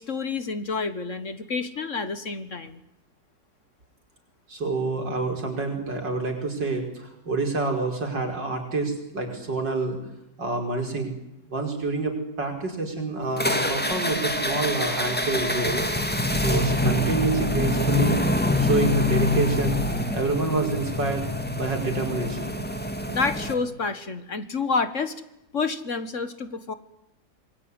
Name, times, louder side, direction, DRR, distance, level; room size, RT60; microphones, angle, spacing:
voice 1, 0.0-2.8 23.1-25.1 25.5-26.7, left 4 dB, 45° left, 12 dB, 1.7 m, -29 dB
voice 2, 4.5-10.0 10.4-11.1 11.5-15.8 16.4-18.2 18.6-19.8 20.1-21.2 21.5-22.6, right 3 dB, 80° right, 3 dB, 5.8 m, -27 dB
sound 1, 13.4-23.5, left 1 dB, 5° left, 2.3 m, -25 dB
27.0 x 21.5 x 9.8 m, 0.86 s
omnidirectional pair, 1.9 m